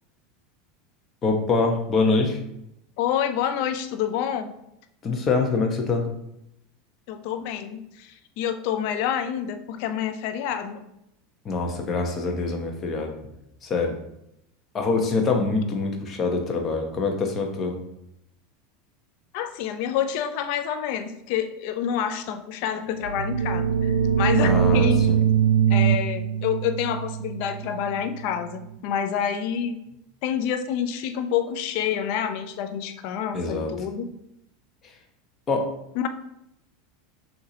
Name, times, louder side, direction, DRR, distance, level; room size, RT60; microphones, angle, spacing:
voice 1, 1.2-2.4 5.0-6.1 11.4-13.1 13.6-14.0 14.7-17.8 24.4-25.2 33.3-33.7 35.5-35.6, left 3 dB, 35° left, 2 dB, 1.0 m, -24 dB
voice 2, 3.0-4.5 7.1-10.8 19.3-25.0 25.7-29.8 30.2-34.1 35.9-36.1, left 9 dB, 60° left, 8 dB, 0.5 m, -28 dB
sound 1, 23.0-28.6, right 8 dB, 80° right, 0.3 m, -22 dB
6.5 x 2.8 x 2.9 m, 0.80 s
hypercardioid pair, 85°, 0 cm